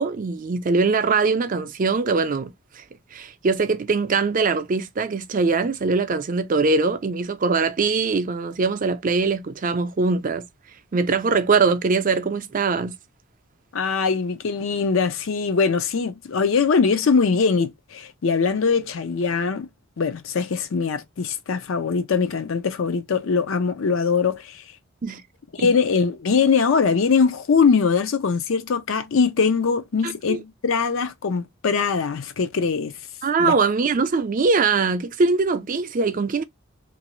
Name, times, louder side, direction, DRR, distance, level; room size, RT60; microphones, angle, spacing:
voice 1, 0.0-2.5 2.8-2.9 3.1-10.4 10.9-12.9 25.0-25.2 25.6-25.7 30.0-30.4 33.2-36.4, right 4 dB, 40° right, 0.4 m, -22 dB
voice 2, 13.7-19.7 20.0-24.6 25.5-32.9 33.4-33.6, left 5 dB, 65° left, 0.5 m, -22 dB
2.9 x 2.5 x 3.0 m
head